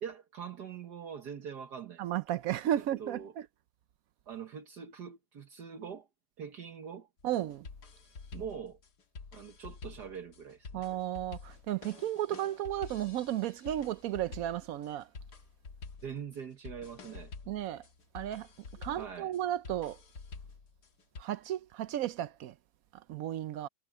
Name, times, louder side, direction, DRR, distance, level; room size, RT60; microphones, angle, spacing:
voice 1, 0.0-2.0 2.8-3.4 4.3-6.1 6.4-7.1 8.3-8.8 9.3-10.9 16.0-17.3 19.0-19.3, right 7 dB, 60° right, 1.7 m, -43 dB
voice 2, 2.0-3.2 7.2-7.6 10.7-15.1 17.5-17.8 18.1-18.5 18.8-20.0 21.2-22.5 23.1-23.7, right 12 dB, 80° right, 0.7 m, -34 dB
sound 1, 7.2-21.2, left 4 dB, 55° left, 2.3 m, -49 dB
omnidirectional pair, 2.1 m